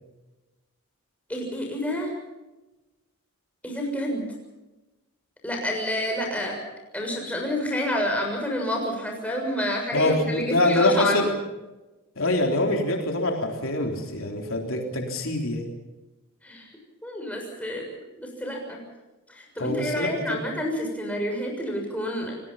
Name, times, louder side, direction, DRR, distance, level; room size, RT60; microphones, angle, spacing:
voice 1, 1.3-2.1 3.6-4.2 5.4-6.5 6.9-11.1 16.4-16.6 17.0-17.9 18.2-18.8 19.3-22.3, left 1 dB, 5° left, 0 dB, 6.8 m, -29 dB
voice 2, 9.9-11.3 12.2-15.7 19.6-20.4, left 1 dB, 65° left, 1 dB, 3.7 m, -24 dB
29.5 x 20.0 x 5.7 m, 1.1 s
head